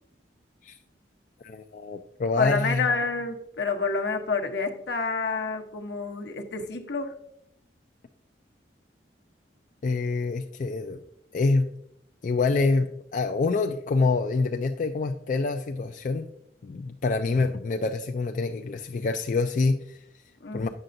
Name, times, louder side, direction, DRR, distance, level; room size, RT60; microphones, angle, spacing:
voice 1, 1.4-2.9 9.8-11.0 11.3-11.7 12.2-16.3 16.6-20.2 20.5-20.7, left 3 dB, 45° left, 5 dB, 0.3 m, -26 dB
voice 2, 2.4-7.1 20.4-20.7, left 4 dB, 75° left, 3 dB, 0.9 m, -28 dB
8.9 x 6.6 x 2.6 m, 0.75 s
head